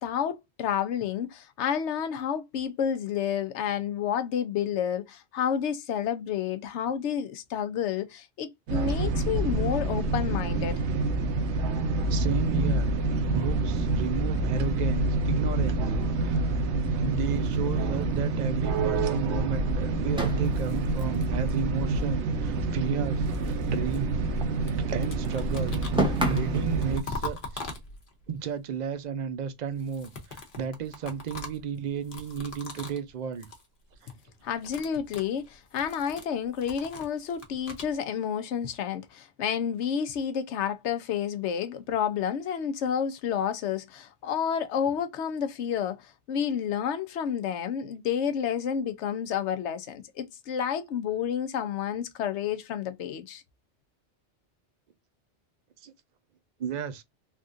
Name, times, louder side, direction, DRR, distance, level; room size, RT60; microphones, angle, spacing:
voice 1, 0.0-10.8 34.4-53.4, left 8 dB, 75° left, 0.9 m, -30 dB
sound 1, 8.7-27.0, right 2 dB, 75° right, 0.9 m, -27 dB
voice 2, 12.1-16.5 17.0-24.1 24.5-27.6 28.3-33.5 55.8-55.9 56.6-57.0, right 7 dB, 55° right, 0.5 m, -33 dB
sound 2, 17.2-18.6 18.9-19.0 19.3-19.4 20.1-22.6 22.9-24.7 25.0-26.7, right 1 dB, 5° right, 0.7 m, -34 dB
sound 3, 20.3-21.9 22.8-24.4 24.7-28.3 29.7-33.1 33.3-33.7 33.9-34.2 34.5-37.9, left 3 dB, 50° left, 1.0 m, -42 dB
3.5 x 2.4 x 2.4 m
omnidirectional pair, 1.2 m